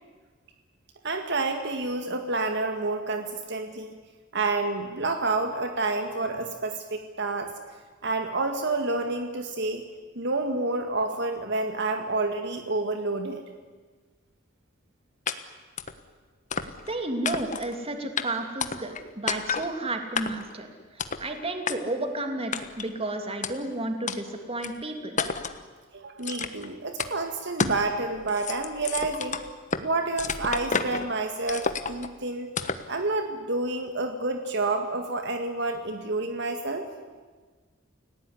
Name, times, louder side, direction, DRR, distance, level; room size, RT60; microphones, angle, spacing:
voice 1, 1.0-3.9 4.3-7.5 8.0-9.8 10.2-13.4 25.9-29.4 29.8-32.5 32.9-36.9, right 3 dB, 60° right, 6 dB, 2.0 m, -29 dB
sound 1, 15.3-15.4 15.8-16.0 16.5-16.9 17.2-17.7 18.2-18.3 18.6-19.0 19.3-19.7 20.2-20.5 21.0-21.2 21.7-21.8 22.5-22.9 23.4-23.5 24.1-24.2 24.6-24.7 25.2-25.6 26.2-26.7 27.0-27.1 27.6-27.8 28.2-29.9 30.2-31.1 31.5-32.1 32.6-32.9, left 5 dB, 40° left, 1.4 m, -30 dB
voice 2, 16.9-25.2, right 2 dB, 30° right, 5 dB, 2.9 m, -32 dB
29.5 x 17.5 x 9.9 m, 1.4 s
head